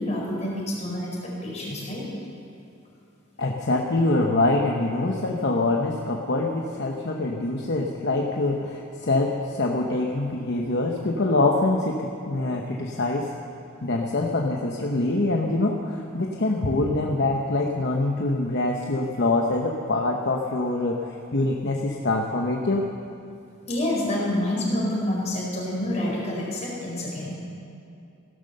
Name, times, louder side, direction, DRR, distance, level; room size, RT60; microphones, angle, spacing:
voice 1, 0.0-2.0 23.7-27.3, left 1 dB, 35° left, -4 dB, 4.7 m, -28 dB
voice 2, 3.4-13.3 13.8-22.9, left 2 dB, 55° left, 0 dB, 1.0 m, -24 dB
16.5 x 12.0 x 6.7 m, 2.6 s
head